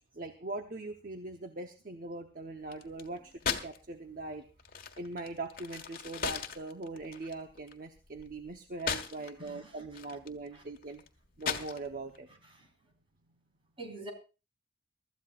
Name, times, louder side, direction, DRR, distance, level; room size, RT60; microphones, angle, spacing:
voice 1, 0.1-4.4 5.0-11.0 11.4-12.3, right 2 dB, 50° right, 1.0 m, -41 dB
sound 1, 2.7-3.8 4.1-9.5 9.8-12.2, left 6 dB, 55° left, 1.5 m, -38 dB
voice 2, 9.4-9.8 10.1-10.2 10.5-10.6 12.4-12.7 13.8-14.1, right 2 dB, 30° right, 4.1 m, -46 dB
23.5 x 13.5 x 2.5 m
head